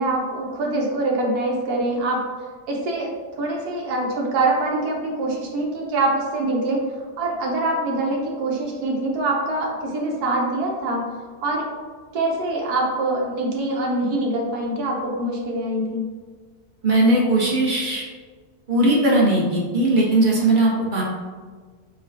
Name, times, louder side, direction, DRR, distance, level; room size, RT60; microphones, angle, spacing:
voice 1, 0.0-2.2 2.7-3.1 3.4-6.8 7.2-11.1 11.4-11.6 12.1-16.1, right 2 dB, 80° right, -1 dB, 1.4 m, -24 dB
voice 2, 16.8-18.0 18.7-21.0, right 1 dB, 40° right, -3 dB, 0.8 m, -18 dB
4.7 x 2.3 x 4.7 m, 1.5 s
omnidirectional pair, 1.6 m